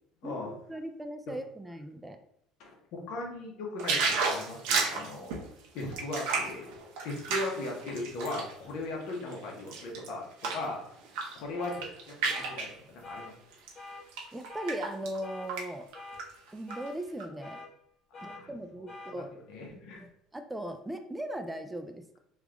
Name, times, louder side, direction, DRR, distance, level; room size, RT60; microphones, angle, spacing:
voice 1, 0.2-2.2 14.3-15.9 16.5-17.6 18.2-19.3 19.7-22.2, right 1 dB, 10° right, 7 dB, 0.3 m, -39 dB
voice 2, 2.6-5.5 5.7-6.7 7.0-10.2 10.5-10.8 11.3-13.3 18.1-18.9 19.2-20.0, left 2 dB, 65° left, 0 dB, 1.0 m, -38 dB
sound 1, 3.8-8.5 9.0-10.7 11.0-11.4 11.6-12.7 13.5-13.7 14.1-15.2 15.5-15.6 15.9-16.7 17.2-17.3, right 4 dB, 85° right, 0.8 m, -32 dB
sound 2, 11.6-11.8 12.3-12.6 13.0-13.3 13.8-14.0 14.5-14.8 15.2-15.5 15.9-16.2 16.7-16.9 17.4-17.7 18.1-18.4 18.9-19.1, left 2 dB, 40° left, 1.3 m, -45 dB
3.4 x 2.4 x 3.3 m, 0.73 s
cardioid pair, 130°, 0 cm